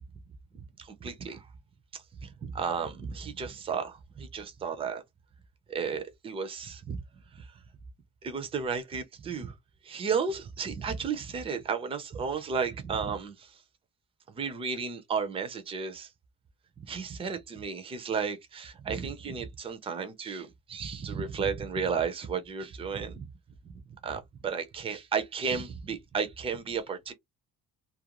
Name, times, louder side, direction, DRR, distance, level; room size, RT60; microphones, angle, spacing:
voice 1, 0.8-1.5 1.9-5.0 5.7-7.0 7.3-7.5 8.2-9.5 9.8-13.6 14.3-16.1 16.8-23.3 24.0-27.1, right 6 dB, 15° right, 0.4 m, -33 dB
2.4 x 2.1 x 2.8 m
cardioid pair, 175°, 34 cm